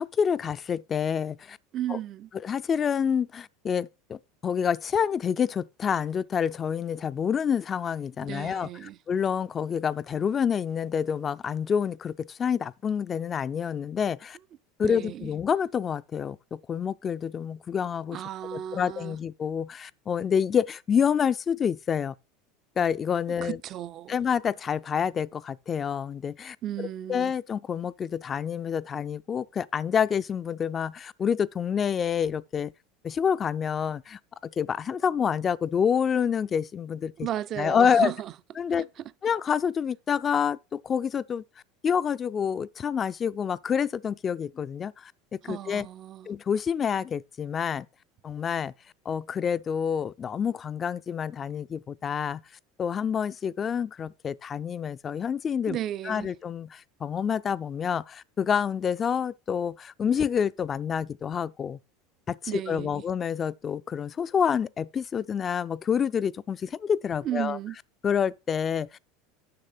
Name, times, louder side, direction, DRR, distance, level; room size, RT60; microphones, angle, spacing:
voice 1, 0.0-1.6 1.9-2.0 2.4-14.4 14.8-18.2 18.5-22.1 22.8-23.6 24.1-32.7 33.0-37.3 37.6-38.1 38.6-38.9 39.2-41.4 41.8-45.9 46.3-47.9 48.2-48.7 49.1-52.4 52.8-55.8 56.0-61.8 62.3-67.6 68.0-69.0, left 7 dB, 30° left, 0.3 m, -28 dB
voice 2, 1.7-2.3 8.2-9.0 14.8-15.3 18.1-19.2 23.3-24.2 26.6-27.3 37.2-38.3 38.8-39.1 45.4-46.3 55.7-56.3 62.5-63.0 67.2-67.8, right 12 dB, 45° right, 0.4 m, -34 dB
6.7 x 6.1 x 5.7 m
supercardioid pair, 100°, 0 cm